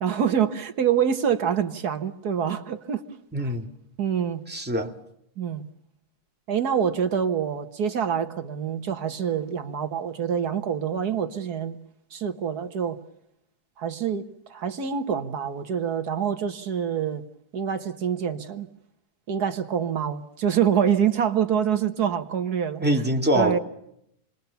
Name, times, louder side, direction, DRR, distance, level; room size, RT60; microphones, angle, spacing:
voice 1, 0.0-3.0 3.4-3.5 4.0-4.4 5.4-5.7 6.5-11.8 12.1-13.0 13.8-17.2 17.5-18.7 19.3-22.8 23.4-23.6, right 8 dB, 75° right, 1.8 m, -26 dB
voice 2, 3.3-3.7 4.5-4.9 22.8-23.6, right 1 dB, 5° right, 2.1 m, -23 dB
28.5 x 21.5 x 6.9 m
omnidirectional pair, 1.7 m